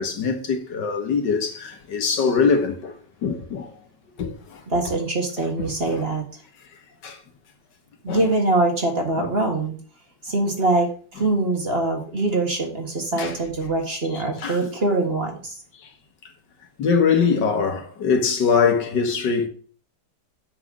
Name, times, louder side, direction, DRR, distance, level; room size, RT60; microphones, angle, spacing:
voice 1, 0.0-3.0 3.2-3.7 4.2-4.6 5.6-6.0 7.0-7.2 8.1-8.2 9.2-9.3 13.1-13.4 14.1-14.6 16.8-19.5, left 5 dB, 80° left, 2.0 m, -23 dB
voice 2, 4.7-6.3 8.0-9.8 10.2-15.6, right 2 dB, 35° right, 2.0 m, -23 dB
7.6 x 6.2 x 4.9 m
omnidirectional pair, 1.9 m